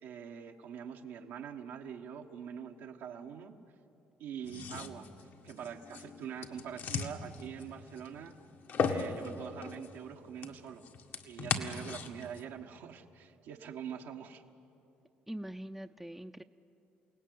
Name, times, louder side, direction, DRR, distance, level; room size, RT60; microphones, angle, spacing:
voice 1, 0.0-3.6 4.2-5.1 5.4-8.4 8.8-10.8 11.2-14.4, right 8 dB, 80° right, 1 dB, 1.3 m, -44 dB
sound 1, 4.4-12.4, left 5 dB, 65° left, 1.9 m, -38 dB
voice 2, 15.3-16.4, right 1 dB, 5° right, 4 dB, 0.6 m, -43 dB
29.0 x 18.0 x 9.4 m, 2.8 s
supercardioid pair, 75°, 4 cm